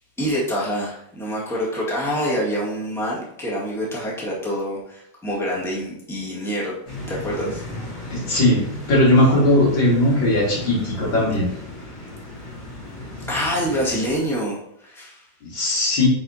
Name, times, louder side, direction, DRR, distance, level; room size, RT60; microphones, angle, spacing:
voice 1, 0.2-6.7 7.1-7.6 13.2-15.3, equal, ahead, -6 dB, 1.8 m, -26 dB
sound 1, 6.9-14.2, left 1 dB, 60° left, 2.9 m, -35 dB
voice 2, 8.1-8.6 8.9-11.5 15.4-16.1, left 1 dB, 80° left, -4 dB, 3.0 m, -18 dB
8.2 x 5.0 x 2.8 m, 0.72 s
omnidirectional pair, 2.0 m